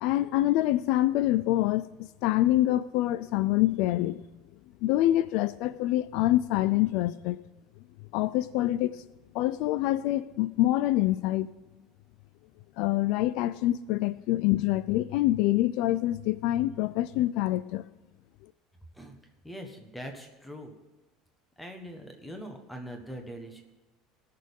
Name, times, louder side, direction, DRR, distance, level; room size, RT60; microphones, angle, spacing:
voice 1, 0.0-1.9 2.2-4.2 4.8-7.4 8.1-9.0 9.3-11.5 12.8-17.9, left 15 dB, 55° left, 0.3 m, -26 dB
voice 2, 19.4-20.7 21.6-23.6, equal, 5° left, 1.3 m, -42 dB
17.5 x 6.5 x 5.4 m
cardioid pair, 180°, 0 cm